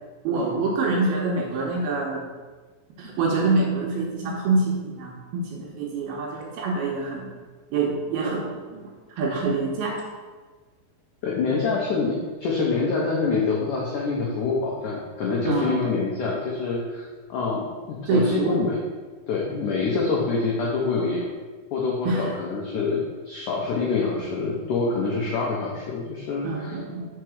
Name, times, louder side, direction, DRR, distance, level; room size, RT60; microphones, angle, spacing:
voice 1, 0.2-2.2 3.0-7.3 7.7-8.9 9.2-10.0 15.5-15.9 18.1-18.6 22.1-22.4 26.4-27.1, right 3 dB, 75° right, -1 dB, 2.5 m, -25 dB
voice 2, 11.2-17.0 17.3-18.8 19.3-21.4 21.7-26.8, left 4 dB, 90° left, -3 dB, 1.7 m, -26 dB
5.9 x 4.6 x 6.3 m, 1.4 s
omnidirectional pair, 5.1 m